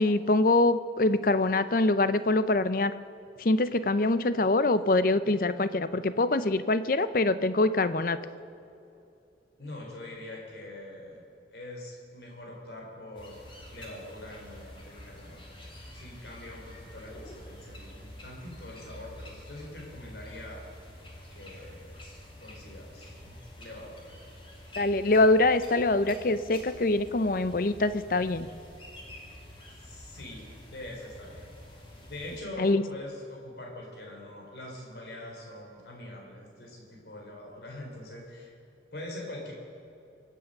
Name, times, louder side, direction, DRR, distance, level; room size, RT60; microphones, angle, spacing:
voice 1, 0.0-2.9 3.4-8.2 24.8-28.5 32.6-32.8, left 2 dB, 50° left, 13 dB, 0.6 m, -24 dB
voice 2, 9.6-13.4 13.7-20.6 21.3-22.0 22.4-24.2 29.8-31.6 32.1-38.5 38.9-39.5, left 1 dB, 65° left, -1 dB, 3.8 m, -44 dB
sound 1, 13.1-32.4, left 1 dB, 30° left, 2.7 m, -48 dB
24.5 x 8.4 x 6.6 m, 2.6 s
head